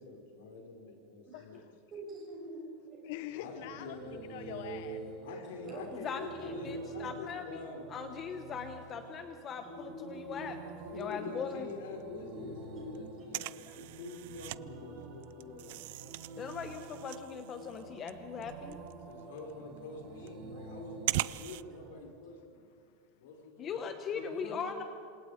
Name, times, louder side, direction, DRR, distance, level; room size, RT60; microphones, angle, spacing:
voice 1, 0.0-1.6 3.4-4.2 5.2-7.8 10.9-15.9 19.0-22.6 23.2-23.8 24.1-24.8, left 4 dB, 80° left, 2 dB, 5.1 m, -46 dB
voice 2, 1.3-1.7 3.0-4.0 4.3-5.5 19.0-19.3, left 13 dB, 55° left, 10 dB, 0.8 m, -45 dB
voice 3, 1.9-3.0 5.6-5.9 6.1-6.3 9.6-10.5 11.1-11.3 12.3-12.8, right 1 dB, 20° right, -2 dB, 6.6 m, -45 dB
sound 1, 3.2-22.0, right 3 dB, 40° right, 2.4 m, -47 dB
voice 4, 6.0-7.6 7.9-10.5 10.9-11.7 13.7-13.8 16.4-18.8 23.6-24.8, left 6 dB, 20° left, 7 dB, 0.9 m, -40 dB
sound 2, 10.8-11.7 12.0-12.1 12.3-14.6 15.0-21.6, right 18 dB, 55° right, 0.4 m, -40 dB
27.0 x 26.5 x 5.1 m, 2.4 s
supercardioid pair, 180°, 0 cm